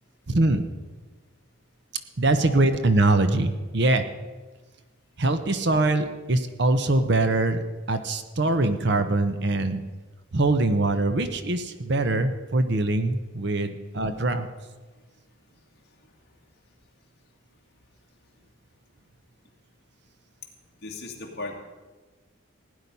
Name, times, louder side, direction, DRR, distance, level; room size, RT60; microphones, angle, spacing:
voice 1, 0.3-0.6 2.2-4.0 5.2-7.6 7.9-9.8 10.3-14.5, right 2 dB, 55° right, 9 dB, 0.8 m, -23 dB
voice 2, 2.4-3.0 16.0-16.1 20.8-21.6, left 2 dB, 50° left, 0 dB, 2.3 m, -38 dB
16.5 x 9.8 x 5.5 m, 1.3 s
head